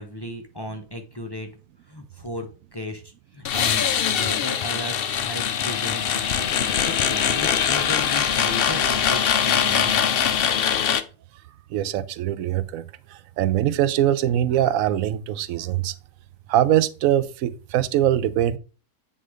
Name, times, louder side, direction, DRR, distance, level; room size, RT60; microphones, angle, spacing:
voice 1, 0.0-1.5 1.9-10.4, left 1 dB, 25° left, 0.6 m, -36 dB
sound 1, 3.4-11.0, left 8 dB, 70° left, 0.5 m, -22 dB
voice 2, 11.7-12.8 13.1-15.9 16.5-18.6, right 12 dB, 70° right, 0.9 m, -22 dB
8.5 x 3.8 x 4.8 m
omnidirectional pair, 1.7 m